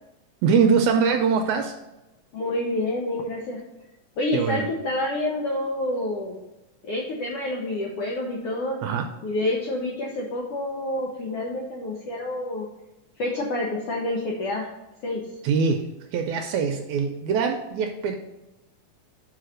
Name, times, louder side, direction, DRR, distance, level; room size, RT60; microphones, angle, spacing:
voice 1, 0.4-1.8 4.3-4.7 8.8-9.1 15.4-18.1, right 6 dB, 80° right, 4 dB, 1.7 m, -23 dB
voice 2, 2.3-3.6 4.2-6.4 6.8-8.8 9.2-12.7 13.2-14.7 15.0-15.3, left 1 dB, 75° left, -1 dB, 1.4 m, -28 dB
5.7 x 4.7 x 6.4 m, 0.98 s
omnidirectional pair, 3.7 m